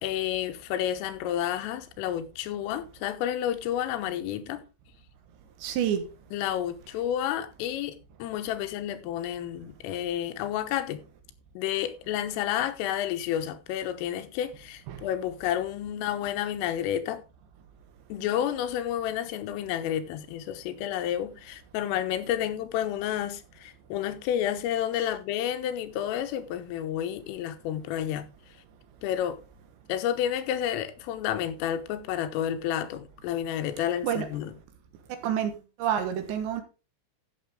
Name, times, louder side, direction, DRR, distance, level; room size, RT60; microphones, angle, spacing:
voice 1, 0.0-4.6 6.3-11.0 11.6-17.2 18.1-28.3 29.0-29.4 29.9-34.5, left 11 dB, 90° left, 3.7 m, -30 dB
voice 2, 5.6-6.1 14.9-15.0 34.0-34.3 35.2-35.5 35.8-36.6, right 9 dB, 70° right, 3.4 m, -28 dB
14.5 x 6.7 x 3.7 m
omnidirectional pair, 5.7 m